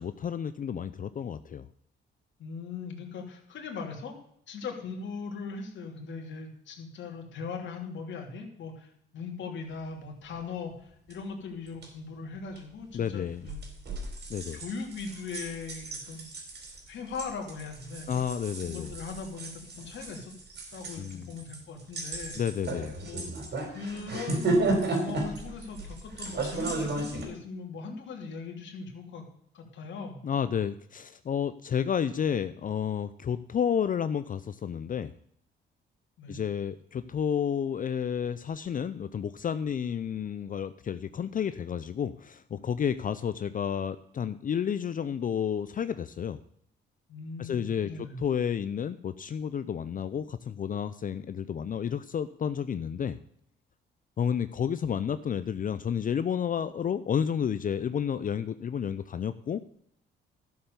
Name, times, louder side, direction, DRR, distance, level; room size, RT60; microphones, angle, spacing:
voice 1, 0.0-1.7 12.9-13.5 14.3-14.6 18.1-18.9 21.0-21.3 22.4-23.0 30.2-35.1 36.3-46.4 47.4-53.2 54.2-59.6, left 8 dB, 45° left, 12 dB, 0.6 m, -31 dB
voice 2, 2.4-4.1 4.5-13.6 14.5-16.3 16.9-18.1 18.6-20.3 20.7-22.4 23.0-23.3 23.7-29.2 29.5-30.2 36.2-36.4 47.1-48.2, left 5 dB, 70° left, 2 dB, 3.0 m, -39 dB
sound 1, 11.1-11.2 11.7-11.9 12.6-12.7 13.4-27.2, right 2 dB, 60° right, 4.4 m, -34 dB
12.5 x 7.2 x 6.9 m, 0.69 s
cardioid pair, 90°, 20 cm